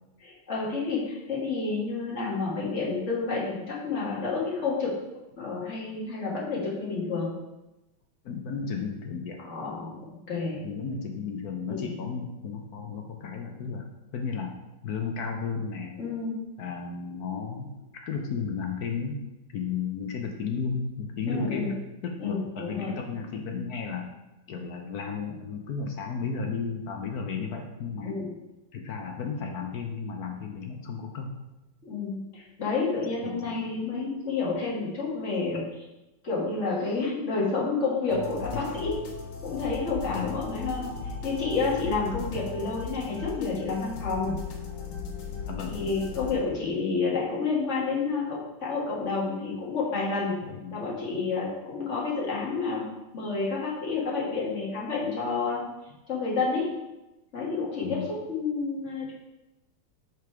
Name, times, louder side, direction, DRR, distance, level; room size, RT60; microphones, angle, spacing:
voice 1, 0.2-4.9 5.4-7.3 9.4-10.6 11.7-11.9 16.0-16.3 21.3-21.7 22.2-22.9 28.0-28.3 31.8-35.6 36.2-38.9 39.4-44.3 45.7-50.3 50.7-52.8 53.1-55.6 56.1-56.7 57.3-58.0 58.3-59.1, left 4 dB, 35° left, -5 dB, 1.8 m, -29 dB
voice 2, 8.2-9.4 10.5-13.8 14.1-14.5 14.8-16.0 16.6-17.7 18.0-19.2 19.5-21.7 22.2-24.1 24.5-28.2 28.7-31.3 33.2-33.4 38.5-38.6 40.0-40.3 45.5-45.8 50.4-50.7 57.8-58.1, left 5 dB, 65° left, 2 dB, 1.0 m, -33 dB
sound 1, 38.1-46.4, left 5 dB, 90° left, 1.8 m, -37 dB
5.3 x 4.8 x 4.6 m, 1.0 s
omnidirectional pair, 2.3 m